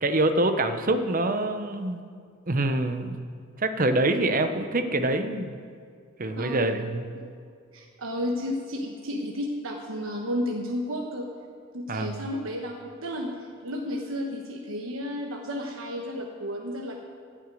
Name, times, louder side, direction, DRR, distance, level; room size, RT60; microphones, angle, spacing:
voice 1, 0.0-2.0 2.5-3.2 3.6-5.6 6.2-7.1 11.9-12.2, right 2 dB, 45° right, 8 dB, 0.9 m, -25 dB
voice 2, 6.4-6.8 7.1-7.3 7.7-11.3 11.7-12.7 13.0-17.0, equal, 85° right, 0 dB, 1.3 m, -32 dB
14.5 x 6.4 x 9.2 m, 2.2 s
head